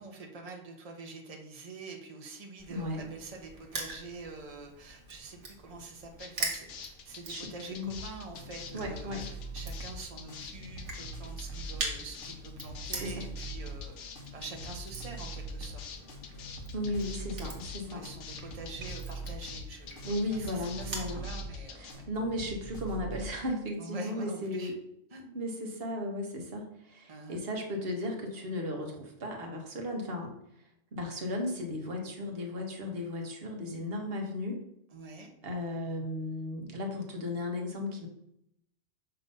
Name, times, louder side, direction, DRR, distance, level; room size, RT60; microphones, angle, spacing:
voice 1, 0.0-14.0 14.3-15.9 17.8-22.5 23.8-24.7 25.1-25.3 27.1-27.4 34.9-35.3, right 3 dB, 30° right, 2 dB, 0.9 m, -46 dB
Crushing, 2.6-21.1, right 2 dB, 70° right, 1.7 m, -44 dB
voice 2, 2.7-3.1 7.3-7.9 8.7-9.2 13.0-13.1 16.7-18.1 20.0-21.2 21.8-24.7 25.3-30.3 30.9-34.6 35.4-38.1, left 1 dB, 50° right, 2 dB, 1.3 m, -35 dB
sound 1, 6.2-21.9, left 6 dB, 70° left, 1.0 m, -46 dB
sound 2, 7.9-23.3, right 2 dB, 45° left, 1.4 m, -43 dB
6.8 x 2.9 x 5.3 m, 0.78 s
omnidirectional pair, 1.3 m